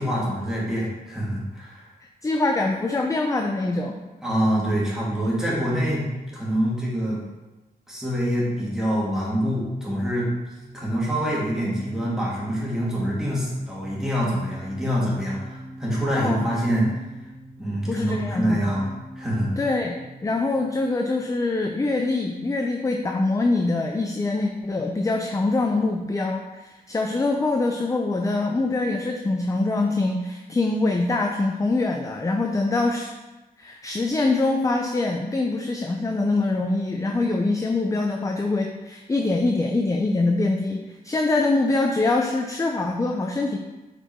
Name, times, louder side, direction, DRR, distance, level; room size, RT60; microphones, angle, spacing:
voice 1, 0.0-1.9 4.2-6.1 6.3-7.2 7.9-10.3 10.7-16.9 17.6-18.9 19.1-19.5, equal, 5° right, -7 dB, 2.3 m, -25 dB
voice 2, 2.2-4.0 16.2-16.5 17.9-18.6 19.6-33.1 33.6-43.6, left 2 dB, 20° left, 2 dB, 0.5 m, -24 dB
sound 1, 9.7-21.9, right 1 dB, 90° left, 2.5 m, -41 dB
6.8 x 4.5 x 4.5 m, 1.1 s
wide cardioid pair, 145°, 17 cm